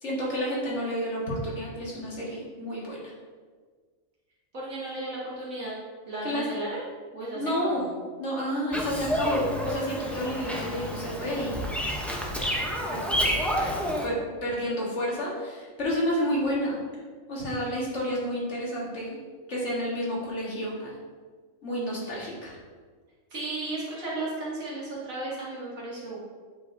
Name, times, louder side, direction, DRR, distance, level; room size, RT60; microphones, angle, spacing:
voice 1, 0.0-3.1 6.2-6.5 7.3-7.8 8.2-11.7 12.9-13.8 14.0-14.1 14.4-16.8 17.3-19.2 19.5-20.9 21.6-22.6, equal, 60° left, -5 dB, 1.8 m, -30 dB
voice 2, 4.5-5.7 6.1-6.8 7.1-8.0 23.3-26.2, right 2 dB, 85° right, -7 dB, 2.3 m, -34 dB
Bird vocalization bird call bird song, 8.7-14.1, equal, ahead, 0.4 m, -29 dB
8.0 x 4.9 x 2.6 m, 1.5 s
omnidirectional pair, 1.4 m